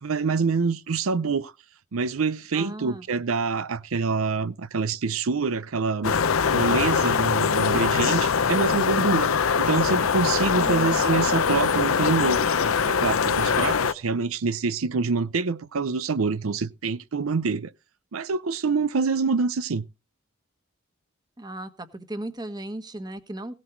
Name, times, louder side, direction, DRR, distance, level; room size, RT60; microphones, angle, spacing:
voice 1, 0.0-1.5 1.9-6.2 6.5-9.3 9.6-12.5 12.9-17.7 18.1-19.8, right 4 dB, 90° right, 0.6 m, -26 dB
voice 2, 2.5-3.1 10.5-11.2 21.4-23.5, right 1 dB, 20° right, 1.3 m, -36 dB
sound 1, 6.0-13.9, left 6 dB, 85° left, 0.7 m, -22 dB
17.0 x 7.5 x 4.5 m
head